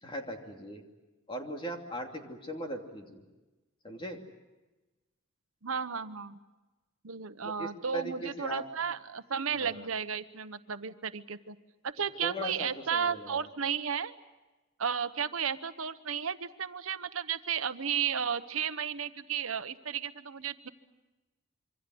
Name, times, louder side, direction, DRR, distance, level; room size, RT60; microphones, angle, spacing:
voice 1, 0.0-0.8 1.3-3.2 3.8-4.2 7.4-8.6 9.6-9.9 12.2-13.5, equal, 25° left, 3 dB, 2.9 m, -39 dB
voice 2, 5.6-6.4 7.0-11.5 11.8-14.1 14.8-20.7, right 7 dB, 85° right, 11 dB, 1.0 m, -33 dB
26.5 x 24.5 x 7.8 m, 1.1 s
head